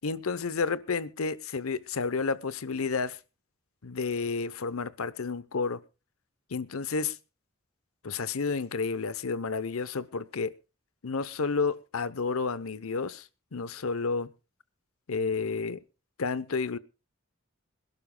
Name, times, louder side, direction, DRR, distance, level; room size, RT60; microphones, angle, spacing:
voice 1, 0.0-3.2 3.8-5.8 6.5-7.2 8.0-10.5 11.0-14.3 15.1-15.8 16.2-16.8, left 4 dB, 90° left, 0.8 m, -31 dB
26.5 x 12.0 x 2.3 m
head